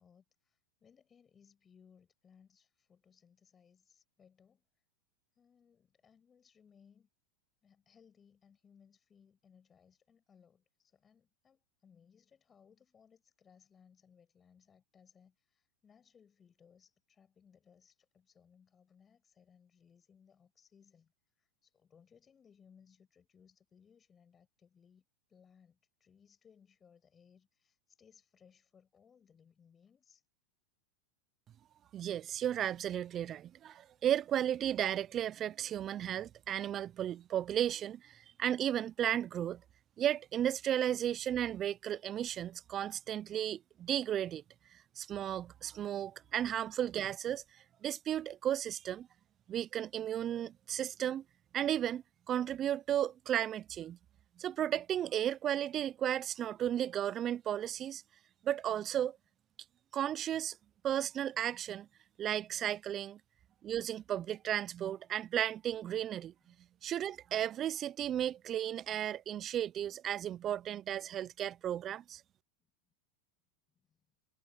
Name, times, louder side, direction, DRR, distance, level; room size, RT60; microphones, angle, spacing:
voice 1, 0.0-4.6 5.4-7.1 7.6-21.1 21.4-25.0 25.3-30.2 46.2-46.4 66.5-66.6 73.7-74.0, left 7 dB, 25° left, 5.9 m, -65 dB
voice 2, 31.9-39.6 40.0-44.4 44.7-47.4 47.8-49.1 49.5-51.2 51.5-54.0 54.4-58.0 58.4-59.2 59.9-60.6 60.8-61.9 62.2-63.2 63.6-66.3 66.8-72.2, right 10 dB, 35° right, 0.5 m, -34 dB
hypercardioid pair, 115°, 0 cm